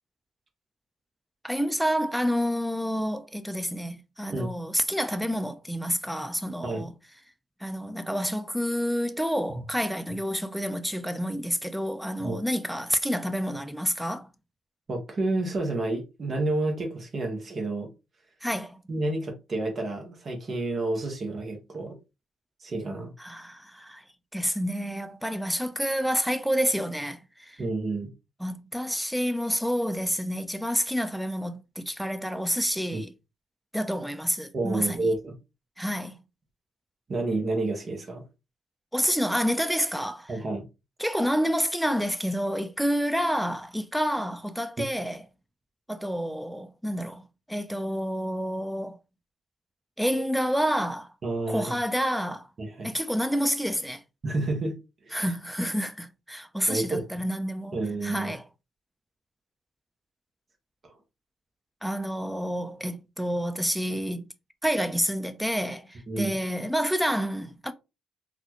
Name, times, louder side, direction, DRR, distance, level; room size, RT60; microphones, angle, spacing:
voice 1, 1.4-6.9 7.6-14.3 18.4-18.8 23.2-24.0 24.3-27.6 28.4-33.1 33.7-35.1 35.8-36.2 38.9-40.3 41.0-45.2 45.9-47.2 47.5-49.0 50.0-51.1 51.5-52.5 52.8-54.0 55.1-58.4 61.8-64.3 64.6-67.7, equal, ahead, 0.6 m, -29 dB
voice 2, 14.9-17.9 18.9-22.0 22.6-23.1 27.6-28.1 32.9-33.0 34.5-35.4 37.1-38.2 40.3-40.6 51.2-51.7 52.6-52.9 54.2-54.7 55.0-55.3 56.7-57.0 57.7-58.3 66.1-66.4, right 2 dB, 50° right, 1.2 m, -29 dB
3.9 x 2.4 x 3.0 m
hypercardioid pair, 55°, 0 cm